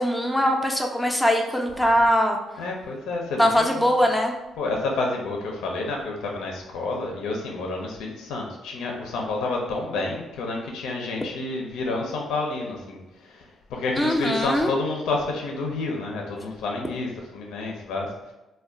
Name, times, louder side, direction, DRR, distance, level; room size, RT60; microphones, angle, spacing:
voice 1, 0.0-2.4 3.4-4.3 14.0-14.7, equal, 5° left, 2 dB, 0.4 m, -21 dB
voice 2, 2.6-3.9 4.6-13.4 13.7-18.1, left 3 dB, 85° left, 0 dB, 0.4 m, -29 dB
2.3 x 2.1 x 3.6 m, 1.0 s
cardioid pair, 90°, 0 cm